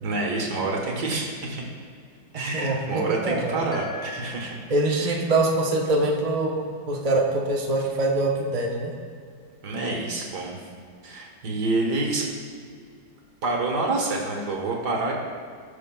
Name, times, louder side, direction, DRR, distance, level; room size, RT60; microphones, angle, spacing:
voice 1, 0.0-1.6 2.3-4.6 5.1-5.2 9.6-10.6 11.0-12.3 13.4-15.1, right 2 dB, 60° right, 0 dB, 1.8 m, -27 dB
voice 2, 2.5-3.6 4.7-8.9, right 2 dB, 40° right, -1 dB, 0.5 m, -24 dB
sound 1, 3.7-5.3, left 3 dB, 15° left, 1.8 m, -41 dB
18.5 x 6.3 x 2.3 m, 2.2 s
omnidirectional pair, 2.2 m